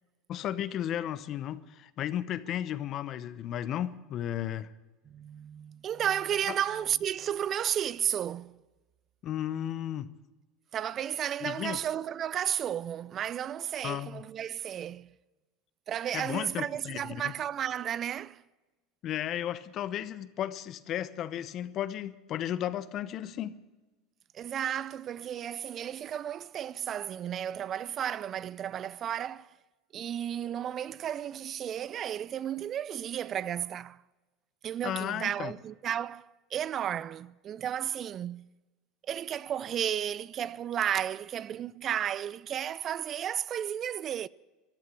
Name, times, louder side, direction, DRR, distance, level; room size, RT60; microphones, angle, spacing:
voice 1, 0.3-4.7 9.2-10.1 11.4-11.8 13.8-14.2 16.1-17.3 19.0-23.6 34.8-35.5, left 11 dB, 45° left, 0.8 m, -34 dB
voice 2, 5.1-8.6 10.7-15.1 15.9-18.4 24.3-29.6 29.9-34.0 34.6-38.5 39.1-44.3, right 10 dB, 40° right, 0.4 m, -33 dB
15.0 x 11.0 x 8.2 m
supercardioid pair, 110°, 0 cm